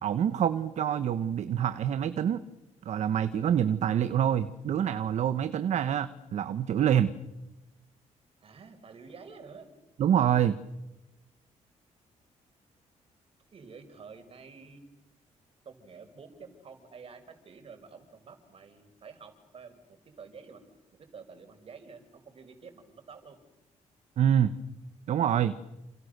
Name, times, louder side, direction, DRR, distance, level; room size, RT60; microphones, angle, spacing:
voice 1, 0.0-2.4 2.8-7.1 10.0-10.6 24.2-24.5 25.1-25.5, right 9 dB, 65° right, 12 dB, 1.2 m, -26 dB
voice 2, 8.4-9.7 13.5-14.8 15.7-20.7 21.0-23.4, right 5 dB, 50° right, 8 dB, 5.4 m, -49 dB
30.0 x 28.5 x 6.8 m, 1.0 s
cardioid pair, 110°, 13 cm